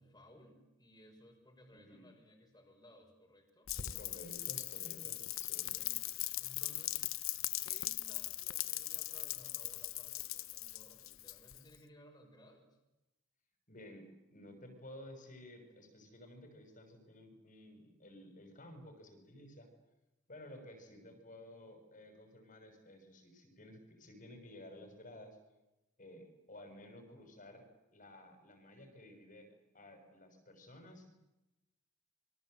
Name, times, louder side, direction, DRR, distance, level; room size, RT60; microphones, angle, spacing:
voice 1, 0.0-3.7 5.5-6.1 6.4-7.1 7.6-12.8, equal, 20° left, 1 dB, 6.4 m, -60 dB
voice 2, 1.7-2.1 3.8-5.7 13.7-19.7 20.3-25.4 26.0-27.7 27.9-31.1, left 1 dB, 35° left, 6 dB, 6.5 m, -54 dB
Rain, 3.7-11.8, left 16 dB, 65° left, 1.3 m, -40 dB
28.5 x 25.5 x 8.0 m, 0.96 s
head